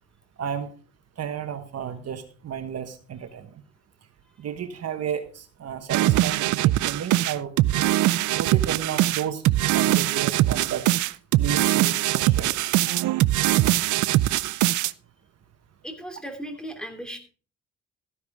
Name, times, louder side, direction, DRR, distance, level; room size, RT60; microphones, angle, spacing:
voice 1, 0.4-0.7 1.2-3.5 4.4-7.5 8.4-9.4 9.7-10.9 11.4-12.6, right 8 dB, 55° right, 8 dB, 1.2 m, -32 dB
sound 1, 5.9-14.9, right 15 dB, 75° right, 0.5 m, -22 dB
voice 2, 15.8-17.2, right 1 dB, 5° left, 5 dB, 2.8 m, -36 dB
13.5 x 10.5 x 3.5 m, 0.38 s
cardioid pair, 90°, 30 cm